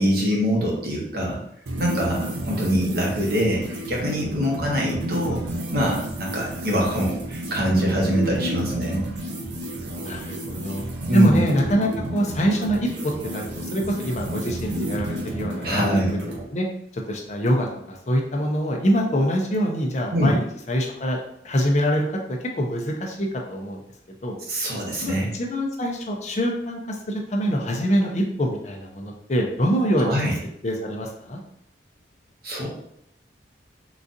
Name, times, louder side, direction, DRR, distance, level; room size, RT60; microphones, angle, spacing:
voice 1, 0.0-1.4 1.8-5.4 5.7-9.1 11.1-11.4 15.6-16.2 20.1-20.4 24.5-25.3 30.0-30.4 32.4-32.7, equal, 55° right, -2 dB, 0.9 m, -24 dB
sound 1, 1.7-16.4, right 1 dB, 70° right, 0.6 m, -31 dB
voice 2, 10.0-10.8 11.1-16.1 16.5-16.7 16.9-23.8 24.2-30.1 30.6-31.4, equal, 40° left, 1 dB, 0.5 m, -25 dB
3.9 x 2.4 x 2.6 m, 0.73 s
head